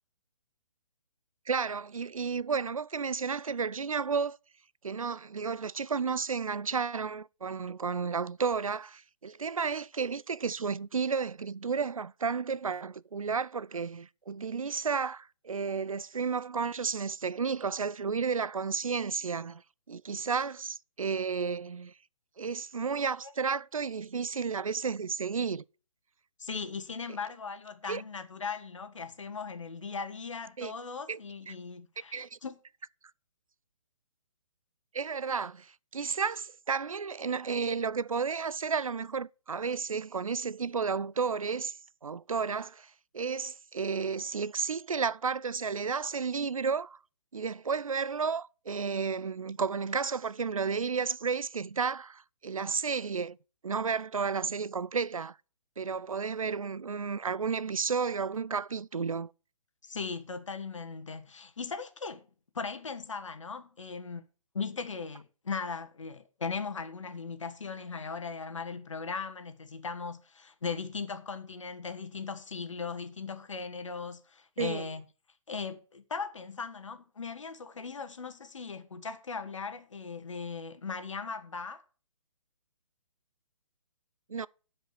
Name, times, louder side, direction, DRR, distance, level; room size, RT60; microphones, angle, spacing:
voice 1, 1.5-4.4 4.8-19.6 19.9-21.9 22.4-25.6 27.9-28.0 30.6-30.7 31.1-31.2 31.5-31.6 32.1-32.4 34.9-41.8 42.0-47.0 47.3-53.4 53.6-55.4 55.8-59.3 74.6-74.9 84.3-84.5, right 5 dB, 85° right, 0.4 m, -32 dB
voice 2, 26.4-32.6 59.8-62.3 62.5-64.2 64.5-75.0 75.5-81.8, left 5 dB, 65° left, 1.4 m, -38 dB
9.4 x 5.2 x 6.9 m
figure-of-eight pair, 135°, 17 cm